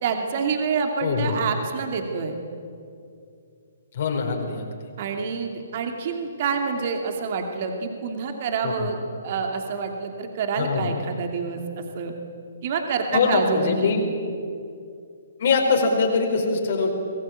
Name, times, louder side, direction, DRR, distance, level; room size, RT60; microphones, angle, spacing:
voice 1, 0.0-2.3 5.0-9.0 9.2-12.1 12.6-13.9, right 5 dB, 40° right, 4 dB, 2.6 m, -27 dB
voice 2, 1.0-1.4 3.9-4.7 8.6-8.9 10.6-10.9 13.1-14.0 15.4-16.9, left 4 dB, 50° left, 1 dB, 4.7 m, -23 dB
24.5 x 20.0 x 9.1 m, 2.4 s
figure-of-eight pair, 125°, 0 cm